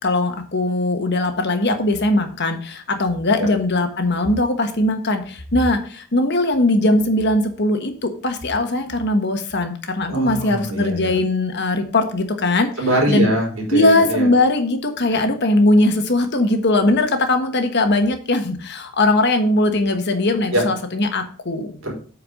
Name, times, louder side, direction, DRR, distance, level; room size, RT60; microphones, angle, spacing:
voice 1, 0.0-12.7 13.1-13.3 13.7-21.8, left 2 dB, 55° left, 6 dB, 1.4 m, -19 dB
voice 2, 10.1-11.2 12.8-14.3 15.1-15.2 20.5-20.7 21.8-21.9, right 1 dB, 65° right, -1 dB, 4.1 m, -22 dB
8.3 x 4.8 x 6.4 m, 0.43 s
head